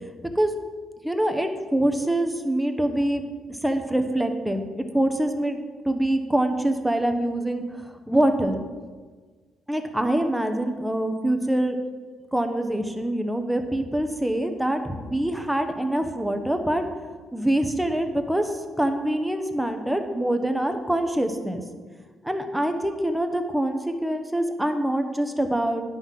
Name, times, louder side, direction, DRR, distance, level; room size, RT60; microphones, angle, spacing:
voice 1, 1.0-3.2 3.5-5.6 5.8-8.6 9.7-11.8 12.3-16.8 17.3-21.6 22.2-25.8, right 1 dB, 5° right, 6 dB, 1.0 m, -25 dB
10.0 x 5.6 x 5.9 m, 1.5 s
cardioid pair, 90°, 0 cm